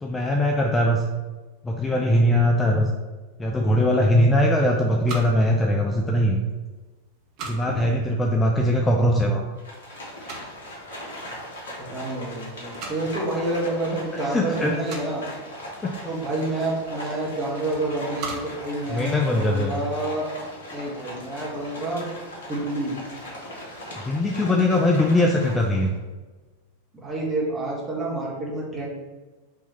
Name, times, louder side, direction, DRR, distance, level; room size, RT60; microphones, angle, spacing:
voice 1, 0.0-1.0 1.6-2.9 3.4-6.4 7.4-9.4 14.1-14.8 15.8-16.0 18.9-19.8 24.0-25.9, left 1 dB, 15° left, 0 dB, 0.4 m, -21 dB
sound 1, 4.5-19.7, right 4 dB, 40° right, 0.7 m, -43 dB
Livestock farm animals working animals, 9.6-25.9, left 1 dB, 65° left, 1.0 m, -39 dB
voice 2, 11.8-15.2 16.0-20.3 20.7-22.1 22.5-22.9 27.0-28.9, right 2 dB, 15° right, -4 dB, 1.3 m, -28 dB
3.6 x 2.9 x 4.1 m, 1.3 s
figure-of-eight pair, 90°, 0 cm